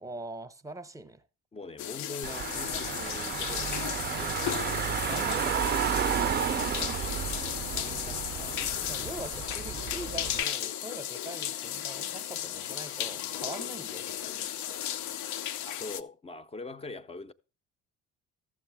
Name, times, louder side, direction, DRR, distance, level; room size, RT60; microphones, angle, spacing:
voice 1, 0.0-1.2 5.0-5.8 8.5-14.5, right 1 dB, 10° right, 0.8 m, -43 dB
voice 2, 1.5-4.6 7.0-7.3 7.7-8.8 15.6-17.3, left 3 dB, 20° left, 0.6 m, -43 dB
sound 1, 1.8-16.0, left 11 dB, 65° left, 0.6 m, -35 dB
Car / Engine, 2.2-10.4, right 8 dB, 35° right, 0.4 m, -32 dB
13.0 x 7.2 x 3.4 m
supercardioid pair, 75°, 30 cm